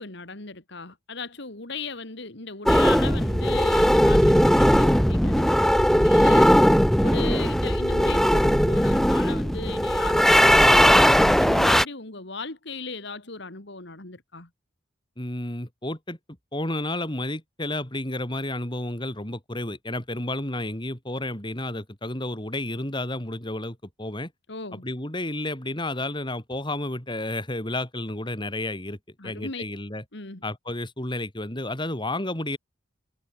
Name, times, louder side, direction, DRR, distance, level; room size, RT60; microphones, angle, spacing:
voice 1, 0.0-6.5 7.0-14.5 24.5-24.8 29.2-29.6 30.1-30.4, left 4 dB, 60° left, 2.5 m, -37 dB
sound 1, 2.7-11.8, equal, ahead, 0.7 m, -18 dB
voice 2, 15.2-16.2 16.5-24.3 24.7-29.0 29.2-30.0 30.4-32.6, left 1 dB, 25° left, 4.2 m, -31 dB
head